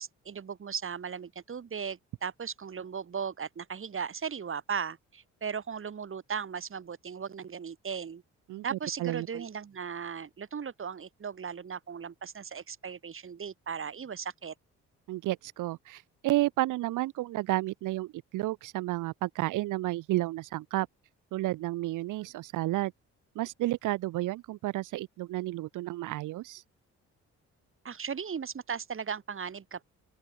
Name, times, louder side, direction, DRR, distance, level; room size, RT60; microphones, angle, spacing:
voice 1, 0.0-8.2 8.6-14.5 27.8-29.8, right 6 dB, 45° right, 4.8 m, -37 dB
voice 2, 8.5-9.4 15.1-20.9 21.3-22.9 23.3-26.6, right 17 dB, 90° right, 1.5 m, -31 dB
open air
cardioid pair, 90°, 30 cm